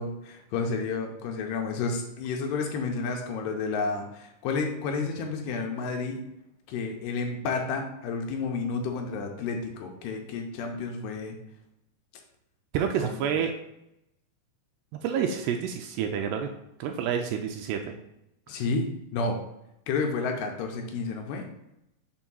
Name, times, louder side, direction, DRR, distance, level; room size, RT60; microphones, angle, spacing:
voice 1, 0.0-6.2 6.7-11.4 13.0-13.3 18.5-18.8 19.1-19.4 19.9-21.5, left 4 dB, 80° left, 2 dB, 2.6 m, -31 dB
voice 2, 12.7-13.5 15.0-18.0, right 8 dB, 85° right, 4 dB, 2.4 m, -29 dB
7.1 x 2.6 x 5.4 m, 0.83 s
omnidirectional pair, 5.0 m